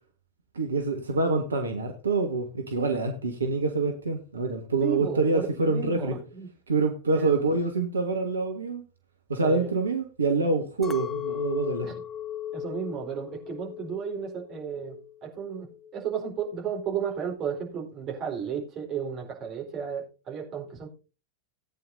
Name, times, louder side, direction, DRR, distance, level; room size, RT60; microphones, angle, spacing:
voice 1, 0.5-6.2 6.7-8.8 9.3-11.9, right 3 dB, 75° right, 1.5 m, -26 dB
voice 2, 4.8-6.5 7.1-7.4 9.4-9.7 11.8-12.0 12.5-20.9, right 7 dB, 35° right, 4.2 m, -34 dB
Chink clink, 10.8-15.2 15.6-16.2, left 9 dB, 15° left, 0.9 m, -37 dB
18.5 x 9.2 x 2.7 m
figure-of-eight pair, 90°, 0 cm